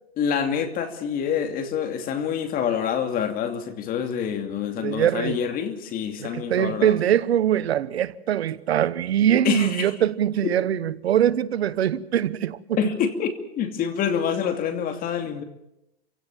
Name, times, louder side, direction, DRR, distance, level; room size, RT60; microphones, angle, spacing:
voice 1, 0.2-7.0 9.4-9.9 10.4-10.5 12.8-15.4, left 8 dB, 30° left, 2.7 m, -26 dB
voice 2, 4.8-5.4 6.2-12.6, right 10 dB, 80° right, 1.1 m, -22 dB
28.0 x 17.0 x 7.3 m
hypercardioid pair, 140°, 31 cm